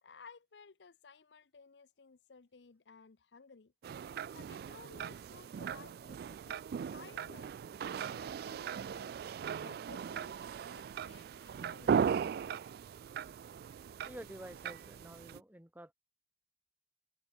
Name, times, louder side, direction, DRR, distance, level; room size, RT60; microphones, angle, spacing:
voice 1, 0.0-3.7 4.3-6.6 6.9-7.5 7.8-9.1 9.6-12.6, left 5 dB, 80° left, 0.7 m, -57 dB
sound 1, 3.8-15.4, right 7 dB, 60° right, 0.3 m, -38 dB
voice 2, 14.0-15.9, right 1 dB, 10° right, 1.9 m, -50 dB
head